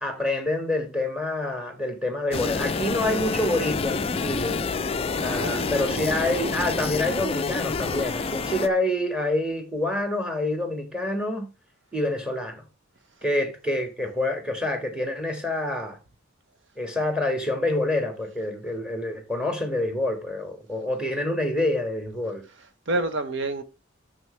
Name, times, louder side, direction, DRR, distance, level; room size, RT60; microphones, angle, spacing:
voice 1, 0.0-4.6 5.2-11.5 11.9-12.6 13.2-16.0 16.8-22.4, left 1 dB, 5° right, 1.7 m, -27 dB
sound 1, 2.3-8.7, left 4 dB, 30° left, 0.4 m, -28 dB
sound 2, 2.6-8.7, right 3 dB, 85° right, 0.8 m, -42 dB
voice 2, 5.4-6.0 22.9-23.6, right 2 dB, 65° right, 1.1 m, -28 dB
9.2 x 6.8 x 3.2 m
head